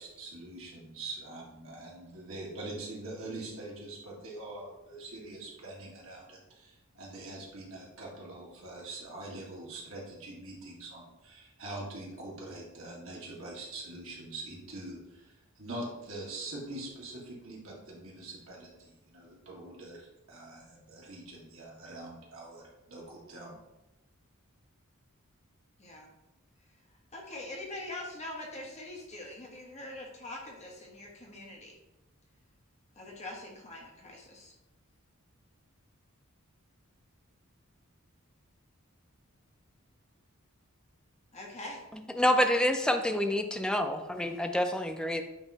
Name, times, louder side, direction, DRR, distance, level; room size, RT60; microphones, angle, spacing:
voice 1, 0.0-23.6, right 2 dB, 70° right, -4 dB, 2.0 m, -44 dB
voice 2, 25.8-26.1 27.1-31.8 33.0-34.5 41.3-41.8, left 1 dB, 30° left, -2 dB, 1.2 m, -43 dB
voice 3, 42.2-45.2, left 1 dB, 5° left, 5 dB, 0.4 m, -27 dB
8.9 x 3.0 x 4.2 m, 0.95 s
head